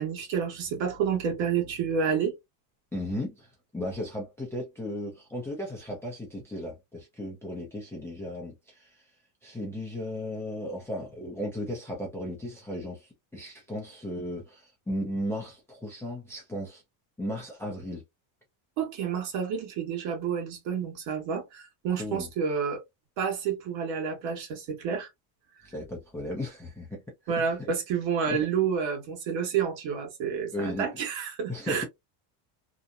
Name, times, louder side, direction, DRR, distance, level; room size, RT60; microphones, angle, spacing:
voice 1, 0.0-2.3 18.8-22.8 23.2-25.1 27.3-31.9, right 7 dB, 65° right, 1.3 m, -29 dB
voice 2, 2.9-9.1 9.4-16.8 17.2-18.0 22.0-22.3 25.6-27.7 28.3-28.4 30.5-31.0 31.5-31.8, left 1 dB, 5° left, 0.5 m, -36 dB
2.8 x 2.0 x 2.4 m
cardioid pair, 145°, 50 cm